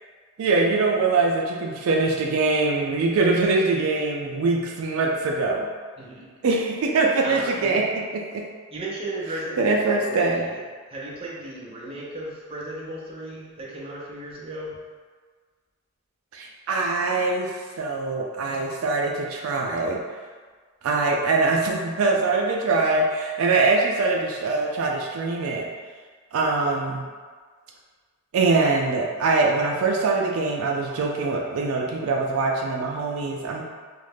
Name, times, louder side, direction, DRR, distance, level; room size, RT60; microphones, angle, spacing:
voice 1, 0.4-5.7 6.4-8.4 9.6-10.5 16.3-20.0 20.8-25.7 26.3-27.1 28.3-33.6, right 3 dB, 85° right, 0 dB, 0.4 m, -23 dB
voice 2, 6.0-6.3 7.2-7.8 8.7-10.6 10.9-14.8, right 1 dB, 25° right, -5 dB, 0.5 m, -35 dB
2.4 x 2.1 x 3.2 m, 1.6 s
head